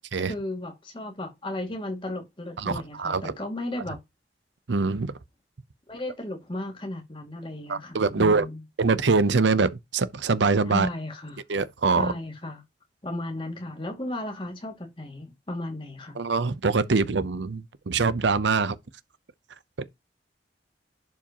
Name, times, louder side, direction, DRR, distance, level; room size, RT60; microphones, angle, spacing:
voice 1, 0.2-4.0 5.9-8.6 10.7-11.4 12.0-12.6 13.0-16.2, left 1 dB, 30° left, 2.2 m, -35 dB
voice 2, 2.6-3.3 4.7-5.1 7.7-8.5 8.8-10.9 11.5-12.1 16.2-18.8 19.8-19.9, right 4 dB, 80° right, 0.7 m, -24 dB
11.0 x 5.0 x 2.9 m
head